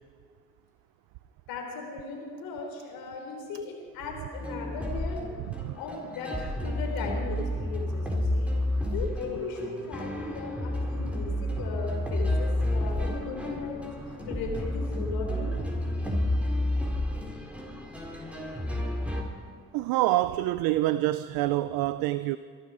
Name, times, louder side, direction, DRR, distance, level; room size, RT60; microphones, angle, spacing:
voice 1, 1.5-5.2 5.8-6.3 6.6-8.5 8.8-13.9 14.3-15.5, left 4 dB, 85° left, 2 dB, 3.5 m, -37 dB
sound 1, 4.3-19.2, left 1 dB, 5° right, 4.6 m, -30 dB
voice 2, 19.7-22.4, right 16 dB, 85° right, 15 dB, 0.5 m, -26 dB
23.0 x 12.0 x 4.9 m, 2.1 s
supercardioid pair, 60°, 35 cm